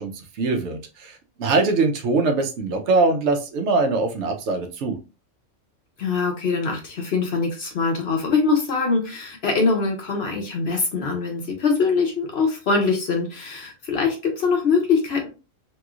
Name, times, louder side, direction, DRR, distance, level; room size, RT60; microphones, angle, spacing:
voice 1, 0.0-5.0, right 3 dB, 70° right, 4 dB, 1.0 m, -22 dB
voice 2, 6.0-15.3, left 4 dB, 60° left, 3 dB, 0.9 m, -23 dB
3.0 x 3.0 x 2.3 m, 0.31 s
omnidirectional pair, 1.3 m